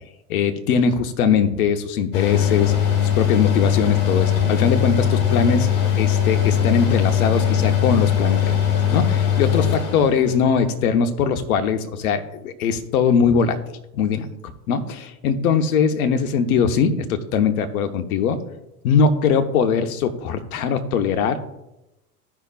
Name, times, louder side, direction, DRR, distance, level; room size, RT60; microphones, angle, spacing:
voice 1, 0.3-2.7 3.2-5.7 6.0-13.6 13.9-14.3 14.7-18.4 18.8-21.5, left 6 dB, 65° left, 9 dB, 1.1 m, -21 dB
Mechanical fan, 2.1-10.6, left 9 dB, 45° left, 2.2 m, -20 dB
15.5 x 5.9 x 2.5 m, 0.94 s
hypercardioid pair, 85°, 47 cm